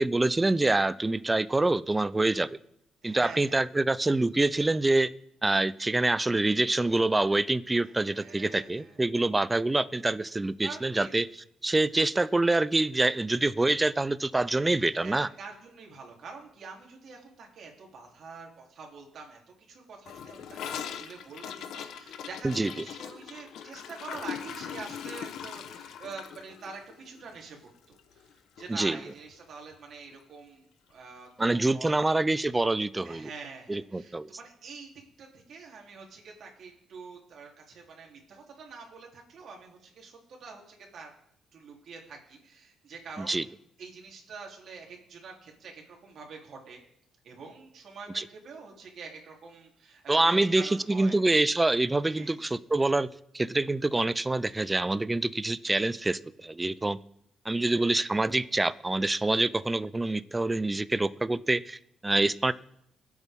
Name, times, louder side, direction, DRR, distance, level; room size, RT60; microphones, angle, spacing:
voice 1, 0.0-2.5 3.0-5.1 5.4-11.3 11.6-15.3 22.4-22.7 28.7-29.0 31.4-33.3 33.7-34.3 43.2-43.4 48.1-48.2 50.1-53.1 53.3-57.0 57.5-62.5, right 2 dB, 15° right, 16 dB, 0.5 m, -26 dB
voice 2, 3.0-3.6 8.1-9.0 10.6-11.1 14.6-19.4 19.7-27.6 27.9-28.3 28.6-32.0 33.0-34.9 35.2-41.1 41.5-46.8 47.2-51.2 52.1-52.3 57.5-58.0, right 4 dB, 60° right, 0 dB, 3.5 m, -46 dB
Gurgling / Toilet flush, 20.1-28.3 28.6-28.7 29.0-29.4 29.7-29.8 30.1-30.2 31.2-31.3, left 8 dB, 80° left, 1.1 m, -41 dB
24.0 x 8.2 x 3.7 m, 0.72 s
cardioid pair, 90°, 0 cm